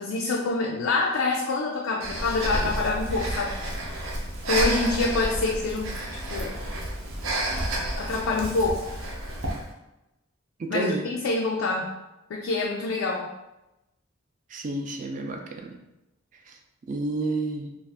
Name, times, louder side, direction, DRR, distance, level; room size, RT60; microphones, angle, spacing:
voice 1, 0.0-3.6 4.5-6.0 6.3-6.6 8.0-8.9 10.7-11.9 12.3-13.3, left 3 dB, 80° left, -1 dB, 0.4 m, -26 dB
Breathing, 2.0-9.7, right 1 dB, 80° right, 0.6 m, -30 dB
voice 2, 10.6-11.0 14.5-15.8 16.5-16.6 16.9-17.7, right 2 dB, 40° right, 3 dB, 0.3 m, -30 dB
2.4 x 2.4 x 3.3 m, 0.95 s
head